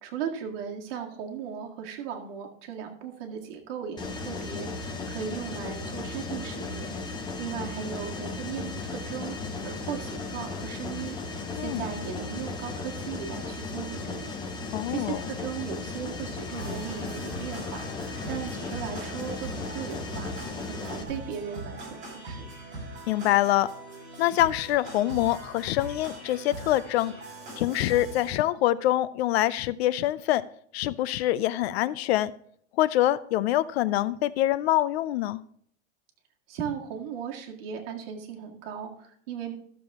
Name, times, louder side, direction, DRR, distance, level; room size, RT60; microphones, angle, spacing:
voice 1, 0.0-9.4 9.6-14.3 14.9-20.3 20.6-22.0 22.3-22.5 36.5-39.5, right 8 dB, 55° right, 1 dB, 2.1 m, -37 dB
Mechanisms, 4.0-21.0, left 3 dB, 10° left, 0.8 m, -36 dB
sound 1, 9.2-15.7 16.5-18.7, left 7 dB, 80° left, 0.9 m, -49 dB
voice 2, 14.7-15.2 23.1-23.7 24.2-27.1 27.6-30.4 30.7-32.3 32.8-35.4, left 14 dB, 60° left, 18 dB, 0.5 m, -25 dB
sound 2, 16.6-28.4, right 2 dB, 20° right, 4.0 m, -41 dB
13.0 x 6.9 x 3.6 m, 0.64 s
supercardioid pair, 160°, 35 cm